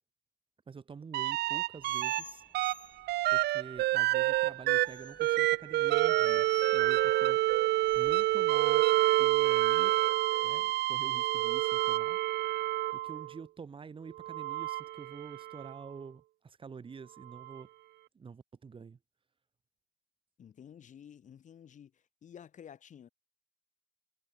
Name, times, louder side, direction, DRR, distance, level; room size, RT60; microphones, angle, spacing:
voice 1, 0.7-2.4 3.3-7.4 7.9-10.0 10.4-12.2 12.9-17.7 18.1-19.0, right 5 dB, 30° right, 3.3 m, -47 dB
sound 1, 1.1-2.2 2.5-13.3 14.2-15.7 17.5-17.6, right 17 dB, 75° right, 1.3 m, -28 dB
sound 2, 1.8-8.4, left 4 dB, 25° left, 7.9 m, -51 dB
voice 2, 20.4-23.1, left 8 dB, 45° left, 4.2 m, -52 dB
cardioid pair, 110°, 17 cm